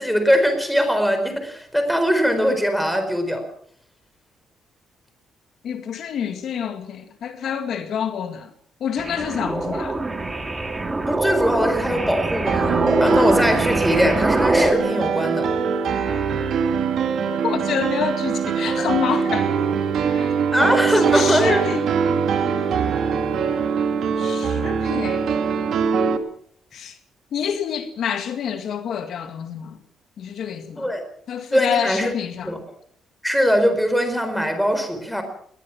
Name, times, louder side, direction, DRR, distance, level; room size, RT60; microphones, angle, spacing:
voice 1, 0.0-3.4 11.1-15.5 20.5-21.6 30.8-31.0 31.5-32.1 32.4-32.6 33.2-35.2, equal, ahead, 4.4 m, -21 dB
voice 2, 5.6-8.5 8.8-10.0 17.3-19.5 20.1-20.8 21.1-21.9 24.2-25.2 26.7-27.0 27.3-29.8 30.2-30.9 31.3-32.6, left 8 dB, 60° left, 2.1 m, -28 dB
sound 1, 9.0-14.7, right 2 dB, 15° right, 2.3 m, -23 dB
Piano, 12.5-26.2, right 6 dB, 60° right, 2.5 m, -22 dB
22.5 x 19.5 x 5.9 m
cardioid pair, 150°, 0 cm